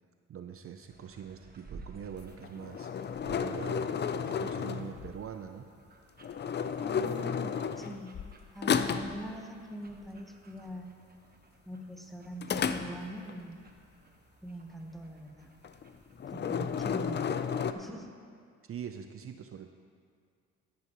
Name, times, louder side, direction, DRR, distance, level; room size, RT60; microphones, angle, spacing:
voice 1, 0.3-2.9 3.3-5.7 18.6-19.7, right 8 dB, 50° right, 7 dB, 0.6 m, -43 dB
sound 1, 0.9-16.7, right 3 dB, 30° right, 1.2 m, -57 dB
sound 2, 2.4-5.2 6.2-8.3 8.6-9.2 12.4-13.3 15.6-15.9 16.2-17.7, left 7 dB, 35° left, 0.5 m, -32 dB
voice 2, 6.8-8.2 8.5-10.9 11.6-13.6 14.4-15.5 16.3-17.4 17.7-18.1, equal, ahead, 2 dB, 1.1 m, -43 dB
13.5 x 10.5 x 3.1 m, 2.1 s
cardioid pair, 90°, 30 cm